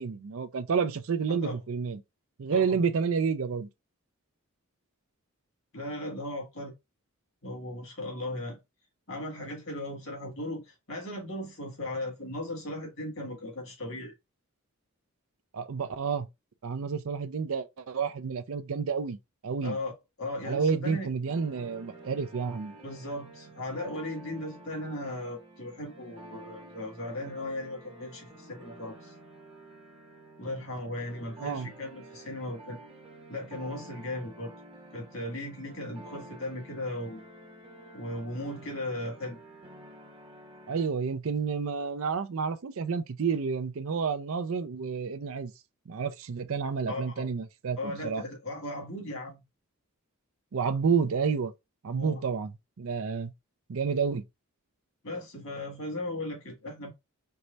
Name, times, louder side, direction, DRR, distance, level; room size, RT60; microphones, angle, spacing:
voice 1, 0.0-2.0 2.4-3.7 15.5-16.3 16.6-19.2 19.4-19.8 20.4-22.7 31.4-31.7 40.7-45.5 45.9-48.2 50.5-51.5 51.8-53.3 53.7-54.2, right 5 dB, 65° right, 0.5 m, -30 dB
voice 2, 5.7-6.8 7.4-8.6 9.1-14.1 19.6-19.9 20.2-21.1 22.8-29.1 30.4-32.8 33.3-34.5 34.9-37.3 37.9-39.4 46.9-47.2 47.8-49.4 51.9-52.2 55.0-56.9, left 1 dB, 65° left, 2.0 m, -37 dB
sound 1, 21.3-40.9, right 1 dB, 25° right, 0.8 m, -50 dB
4.7 x 2.1 x 3.9 m
head